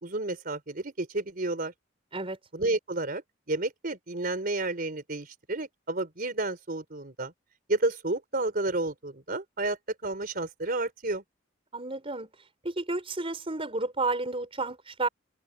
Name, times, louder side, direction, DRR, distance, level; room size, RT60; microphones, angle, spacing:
voice 1, 0.0-1.7 2.5-3.2 3.5-7.3 7.7-11.2, right 2 dB, 50° right, 3.8 m, -31 dB
voice 2, 11.7-12.3 12.6-15.1, right 3 dB, 30° right, 5.6 m, -31 dB
head